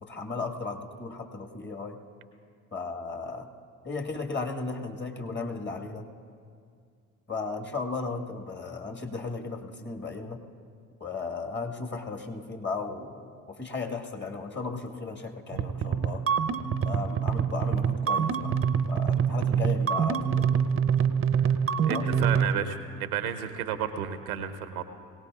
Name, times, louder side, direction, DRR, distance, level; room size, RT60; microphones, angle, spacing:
voice 1, 0.0-2.0 2.7-3.5 3.8-6.1 7.3-10.4 11.0-16.2 16.8-18.6 18.9-20.5 21.9-22.1, left 4 dB, 25° left, 3 dB, 1.6 m, -35 dB
sound 1, 15.5-22.5, right 7 dB, 30° right, 0.7 m, -25 dB
voice 2, 21.8-24.8, right 9 dB, 85° right, 10 dB, 0.8 m, -32 dB
22.0 x 17.5 x 2.4 m, 2.3 s
hypercardioid pair, 55°, 42 cm